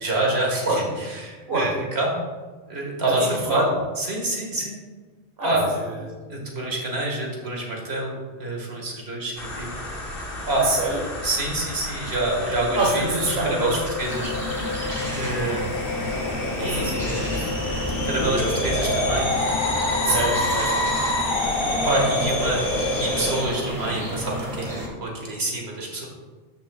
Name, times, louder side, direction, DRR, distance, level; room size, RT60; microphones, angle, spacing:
voice 1, 0.0-2.2 2.7-3.6 4.0-4.7 5.4-5.7 6.3-9.7 10.5-10.7 11.2-14.7 15.2-15.7 16.6-17.1 18.0-19.3 20.0-20.5 21.8-26.0, right 2 dB, 85° right, -1 dB, 2.0 m, -27 dB
voice 2, 0.6-1.0 1.5-1.8 3.1-3.7 5.4-6.0 10.6-11.1 12.7-13.9 16.5-17.5 20.0-20.7, right 2 dB, 70° right, -2 dB, 1.4 m, -26 dB
sound 1, 9.4-23.4, left 1 dB, 65° left, 1.5 m, -28 dB
sound 2, 12.4-21.3, left 6 dB, 45° right, 1.8 m, -34 dB
sound 3, 14.0-24.9, equal, 30° right, 1.8 m, -31 dB
12.5 x 6.3 x 2.3 m, 1.4 s
omnidirectional pair, 1.0 m